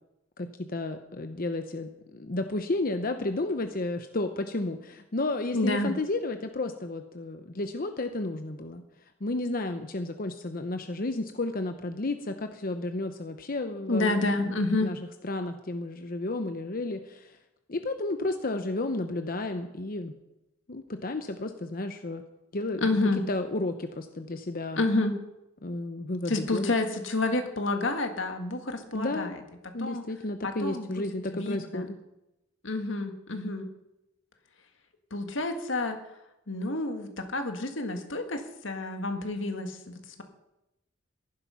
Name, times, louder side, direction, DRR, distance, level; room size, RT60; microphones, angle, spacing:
voice 1, 0.4-8.8 9.2-14.2 14.8-15.0 15.2-17.4 17.7-20.1 20.7-22.2 22.5-22.8 23.1-24.8 25.6-26.7 28.9-29.4 29.7-32.0, left 2 dB, 50° left, 7 dB, 0.9 m, -32 dB
voice 2, 5.5-5.9 13.9-14.9 22.8-23.2 24.8-25.2 26.3-29.4 29.8-30.0 30.4-31.9 32.6-33.7 35.1-36.0 36.5-40.2, left 2 dB, 85° left, 6 dB, 1.9 m, -29 dB
15.0 x 11.5 x 5.7 m, 0.93 s
head